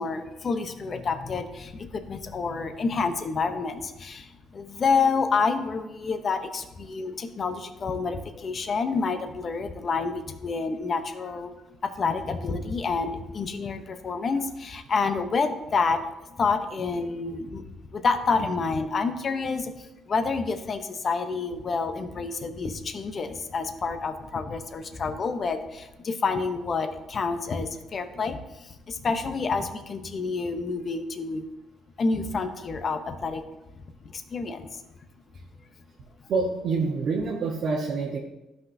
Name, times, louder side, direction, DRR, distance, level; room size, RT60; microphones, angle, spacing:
voice 1, 0.0-11.5 11.8-16.0 16.4-17.6 17.9-31.4 32.0-33.4 34.0-34.8, left 4 dB, 35° left, 8 dB, 0.7 m, -28 dB
voice 2, 36.3-38.2, right 4 dB, 55° right, -3 dB, 1.0 m, -26 dB
14.0 x 5.8 x 2.7 m, 0.99 s
cardioid pair, 140°, 0 cm